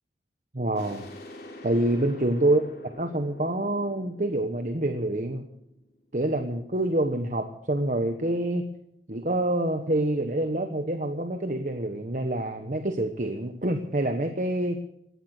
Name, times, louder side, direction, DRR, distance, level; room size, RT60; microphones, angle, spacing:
voice 1, 0.5-1.0 1.6-2.6 3.0-5.5 6.1-8.7 9.1-14.8, right 1 dB, 45° right, 6 dB, 1.2 m, -26 dB
sound 1, 0.8-6.2, left 1 dB, 60° left, 3.2 m, -46 dB
18.0 x 12.0 x 6.5 m, 0.78 s
head